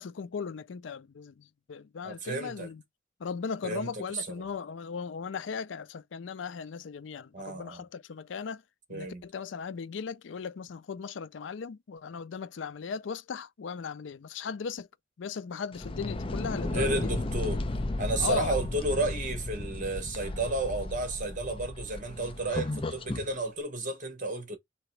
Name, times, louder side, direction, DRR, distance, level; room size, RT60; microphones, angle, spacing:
voice 1, 0.0-2.8 3.2-8.6 8.9-14.9 15.2-17.1 18.2-18.6, left 6 dB, 80° left, 0.4 m, -37 dB
voice 2, 2.0-2.7 3.6-4.4 7.3-7.8 8.9-9.2 16.6-17.6 18.0-24.6, right 2 dB, 45° right, 1.3 m, -32 dB
sound 1, 15.7-23.3, left 2 dB, 30° left, 0.6 m, -34 dB
3.8 x 3.0 x 4.5 m
head